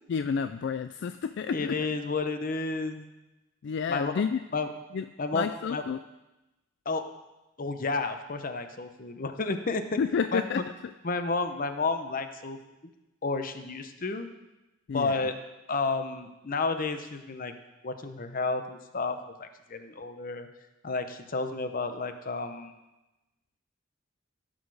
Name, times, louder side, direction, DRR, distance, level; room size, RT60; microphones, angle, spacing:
voice 1, 0.1-1.8 3.6-4.4 4.9-5.0 5.3-6.0 10.0-10.6 14.9-15.2, left 6 dB, 60° left, 11 dB, 0.3 m, -30 dB
voice 2, 1.5-3.0 3.9-4.1 4.5-4.7 5.2-5.8 6.9-7.0 7.6-10.0 10.3-10.6 11.0-12.6 13.2-14.3 14.9-15.3 15.7-17.6 17.8-20.5 20.8-22.7, left 3 dB, 45° left, 8 dB, 0.8 m, -31 dB
16.0 x 6.3 x 4.8 m, 1.0 s
head